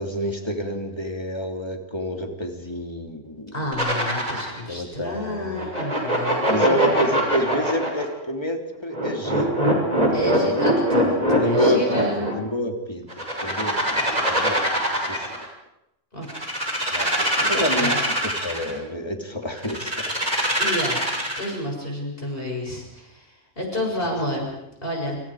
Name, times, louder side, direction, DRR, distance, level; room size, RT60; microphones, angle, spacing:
voice 1, 0.0-3.5 4.7-5.7 6.5-9.6 10.1-10.6 11.4-14.6 15.1-15.4 16.9-17.9 18.4-20.2, equal, 20° left, 2 dB, 3.2 m, -28 dB
voice 2, 3.5-7.1 10.1-12.5 16.1-16.3 17.1-18.0 20.6-21.0 21.4-25.2, left 1 dB, 45° left, 0 dB, 7.1 m, -30 dB
sound 1, 3.7-4.6 5.6-8.1 8.9-12.3 13.1-15.5 16.2-18.7 19.6-21.6, equal, 30° right, 6.7 m, -22 dB
29.0 x 28.0 x 5.0 m, 0.85 s
omnidirectional pair, 1.3 m